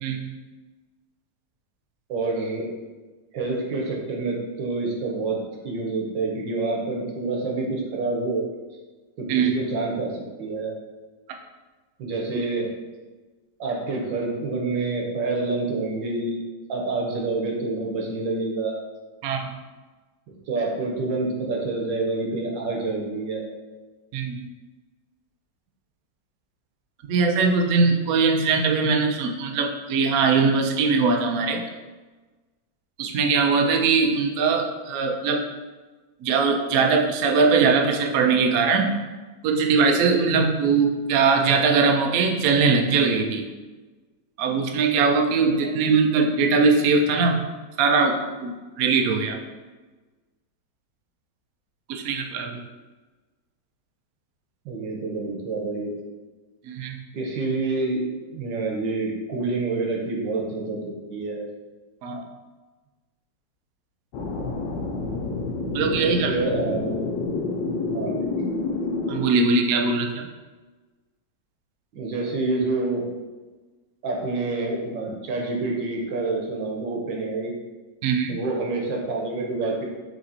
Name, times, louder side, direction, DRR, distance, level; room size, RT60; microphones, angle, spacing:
voice 1, 2.1-2.7 3.3-8.4 9.2-10.7 12.0-12.7 13.6-16.4 16.7-18.8 20.5-23.5 45.6-45.7 54.7-55.9 57.1-58.0 58.3-61.4 65.9-67.1 67.9-68.3 71.9-73.1 74.0-77.5 78.3-79.8, right 3 dB, 90° right, -1 dB, 1.6 m, -27 dB
voice 2, 24.1-24.5 27.0-31.6 33.0-35.4 36.2-38.9 39.4-43.4 44.4-47.4 47.8-49.4 51.9-52.6 56.7-57.0 62.0-62.2 65.7-66.3 69.1-70.2 78.0-78.4, right 4 dB, 75° right, 3 dB, 0.8 m, -21 dB
sound 1, 64.1-69.3, left 3 dB, 75° left, 1.2 m, -28 dB
5.7 x 3.0 x 2.8 m, 1.3 s
omnidirectional pair, 2.0 m